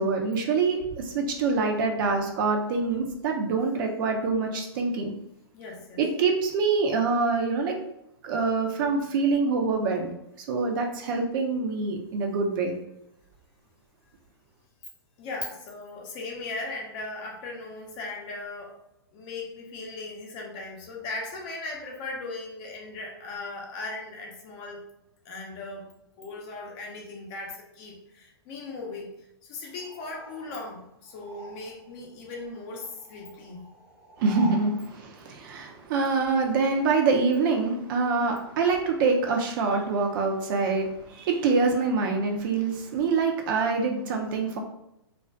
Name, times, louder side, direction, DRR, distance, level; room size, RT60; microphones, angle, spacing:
voice 1, 0.0-5.1 6.0-7.8 8.2-10.1 10.5-12.7 34.2-44.6, right 4 dB, 50° right, 3 dB, 0.5 m, -25 dB
voice 2, 5.5-6.1 6.6-6.7 15.2-18.7 19.1-24.8 25.2-25.9 26.2-29.1 29.4-33.6, left 3 dB, 40° left, -1 dB, 0.7 m, -38 dB
sound 1, 29.8-32.0 32.3-34.7, right 2 dB, 10° right, 0.7 m, -46 dB
2.4 x 2.3 x 2.2 m, 0.80 s
hypercardioid pair, 125°, 14 cm